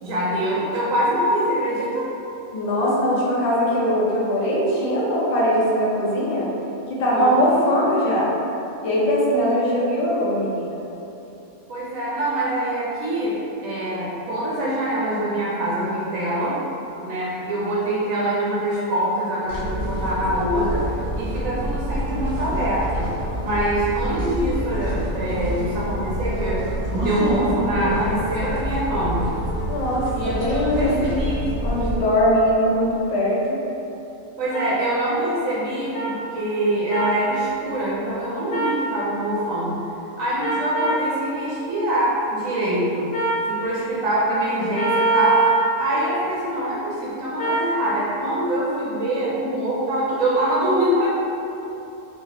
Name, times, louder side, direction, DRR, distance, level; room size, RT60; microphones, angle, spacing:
voice 1, 0.0-2.1 7.1-7.4 11.7-13.4 13.6-16.6 17.0-23.1 23.4-26.6 26.9-29.3 30.2-31.4 34.4-39.8 40.2-43.1 43.5-51.1, right 1 dB, 70° right, -7 dB, 1.1 m, -24 dB
voice 2, 2.5-6.5 6.9-8.3 8.8-10.8 29.7-31.0 31.6-33.6, equal, 40° left, -6 dB, 0.6 m, -21 dB
sound 1, 19.5-31.9, equal, 25° right, 0.8 m, -27 dB
sound 2, 34.5-34.7 35.9-36.1 36.9-37.1 38.5-38.8 40.4-41.0 43.1-43.4 44.7-45.6 47.4-47.7, right 3 dB, 60° left, 1.0 m, -22 dB
4.1 x 2.8 x 2.9 m, 2.9 s
omnidirectional pair, 1.5 m